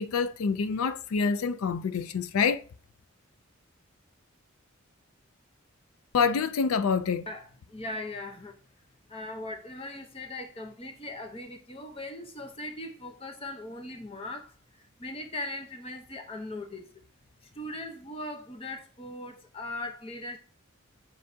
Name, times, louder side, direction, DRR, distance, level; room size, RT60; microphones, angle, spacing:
voice 1, 0.0-2.6 6.1-7.3, left 5 dB, 85° left, 0.4 m, -26 dB
voice 2, 7.3-8.6 9.1-16.9 17.5-20.4, left 1 dB, 25° left, 0.8 m, -39 dB
7.6 x 4.7 x 2.7 m
head